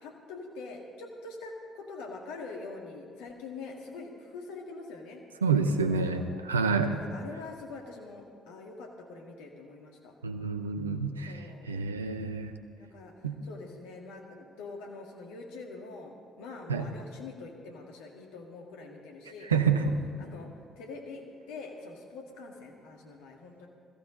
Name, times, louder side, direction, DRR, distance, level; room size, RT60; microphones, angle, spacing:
voice 1, 0.0-5.2 5.5-6.5 6.9-10.1 11.2-11.7 12.7-19.8 20.2-20.5 20.8-23.7, left 3 dB, 70° left, 1 dB, 1.8 m, -44 dB
voice 2, 5.4-7.0 10.2-11.3 11.7-12.5 13.2-13.3 16.7-16.8 19.5-19.8, right 5 dB, 85° right, 8 dB, 0.7 m, -28 dB
20.5 x 14.5 x 3.7 m, 2.1 s
figure-of-eight pair, 45°, 0 cm